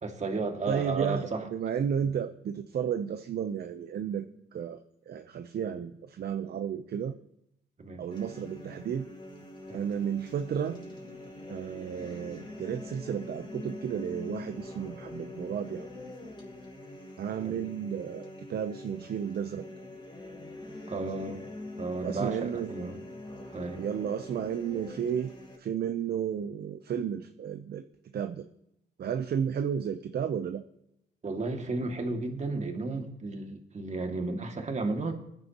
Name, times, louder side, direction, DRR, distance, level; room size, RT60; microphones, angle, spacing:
voice 1, 0.0-1.5 7.8-8.0 9.7-9.8 17.4-17.6 20.9-21.4 21.8-23.0 23.5-23.8 31.2-35.1, right 3 dB, 35° right, 3 dB, 2.3 m, -33 dB
voice 2, 0.7-4.2 4.5-4.8 5.1-7.1 8.0-9.1 9.7-10.8 11.5-15.9 17.2-19.7 22.0-22.7 23.8-25.3 25.6-27.8 28.1-28.5 29.0-30.6, right 8 dB, 55° right, 8 dB, 0.8 m, -32 dB
sound 1, 8.1-25.6, left 1 dB, 25° left, 4.2 m, -44 dB
21.0 x 10.5 x 3.0 m, 0.79 s
cardioid pair, 90°, 20 cm